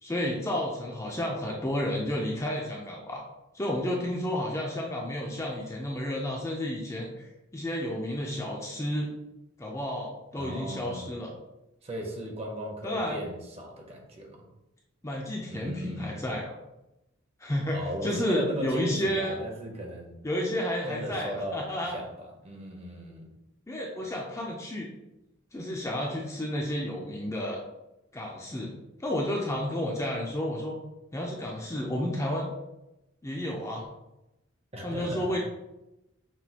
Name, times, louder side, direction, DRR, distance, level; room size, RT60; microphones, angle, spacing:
voice 1, 0.0-3.2 3.5-7.3 7.5-9.1 9.6-11.3 12.8-13.2 15.0-16.5 17.4-19.4 20.2-22.0 23.7-24.9 25.5-27.6 28.1-28.7 29.0-30.8 31.1-32.5 33.2-33.9 34.8-35.4, left 1 dB, 15° left, -1 dB, 0.4 m, -31 dB
voice 2, 10.3-11.1 11.8-14.5 15.5-16.3 17.7-20.1 20.9-23.3 34.7-35.4, equal, 30° right, 1 dB, 0.7 m, -37 dB
6.0 x 2.4 x 2.8 m, 0.95 s
head